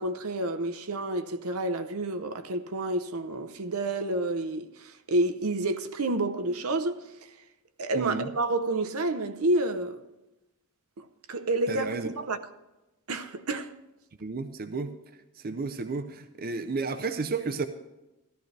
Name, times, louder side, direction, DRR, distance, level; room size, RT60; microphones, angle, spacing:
voice 1, 0.0-7.0 7.8-10.0 11.0-12.4 13.1-13.7, right 2 dB, 75° right, 0.7 m, -29 dB
voice 2, 7.9-8.3 11.7-12.1 14.2-14.9 15.4-17.7, right 4 dB, 45° right, 0.5 m, -32 dB
14.5 x 12.0 x 3.3 m
head